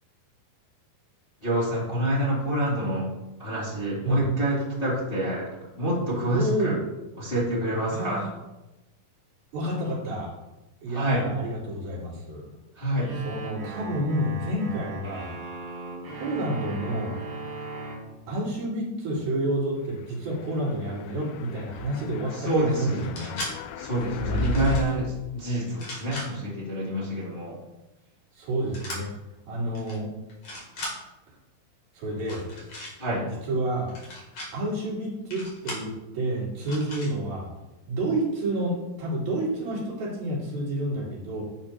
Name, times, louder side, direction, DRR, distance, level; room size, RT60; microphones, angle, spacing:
voice 1, 1.4-3.1 3.4-5.5 5.8-6.7 7.2-8.3 10.9-11.3 12.7-13.1 22.3-23.1 23.8-27.6 33.0-33.3, right 1 dB, 20° left, -8 dB, 2.0 m, -27 dB
voice 2, 6.3-6.8 7.9-8.3 9.5-10.3 10.8-12.5 13.2-15.4 16.1-17.1 18.3-23.4 24.2-24.7 28.3-29.1 29.5-30.1 31.9-32.5 33.5-33.9 34.5-37.5 37.9-41.4, right 1 dB, 70° right, -6 dB, 4.7 m, -29 dB
sound 1, 13.1-18.0, right 3 dB, 45° right, 2.5 m, -38 dB
sound 2, 20.4-24.8, left 1 dB, 90° left, 2.5 m, -34 dB
sound 3, 22.9-23.5 24.3-24.9 25.7-26.3 28.7-29.0 29.7-30.0 30.3-30.9 32.2-32.9 33.9-34.5 35.3-35.9 36.6-37.1, left 1 dB, 40° left, 3.3 m, -37 dB
11.5 x 7.2 x 2.8 m, 0.98 s
omnidirectional pair, 4.4 m